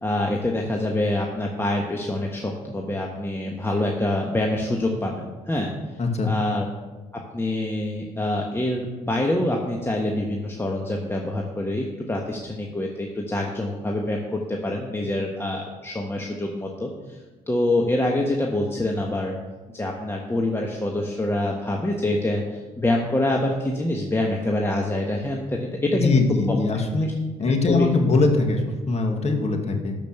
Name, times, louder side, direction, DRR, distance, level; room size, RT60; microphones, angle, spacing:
voice 1, 0.0-5.7 6.2-6.6 7.3-16.9 17.5-19.3 19.7-26.1 26.5-26.6 27.7-27.9, left 1 dB, 15° left, 0 dB, 1.5 m, -25 dB
voice 2, 25.9-27.1 27.4-30.0, left 3 dB, 45° left, 3 dB, 2.0 m, -21 dB
12.0 x 5.4 x 6.6 m, 1.3 s
supercardioid pair, 60°, 15 cm